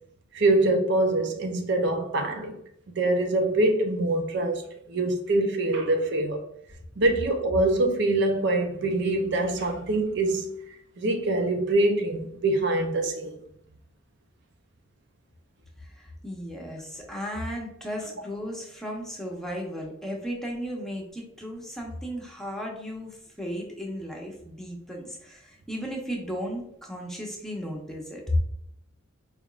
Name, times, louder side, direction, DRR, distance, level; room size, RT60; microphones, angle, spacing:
voice 1, 0.3-2.6 2.9-6.5 7.0-10.5 11.0-13.4, right 2 dB, 55° right, 0.5 m, -24 dB
voice 2, 15.8-28.4, equal, ahead, 0.8 m, -35 dB
4.8 x 3.4 x 2.4 m
head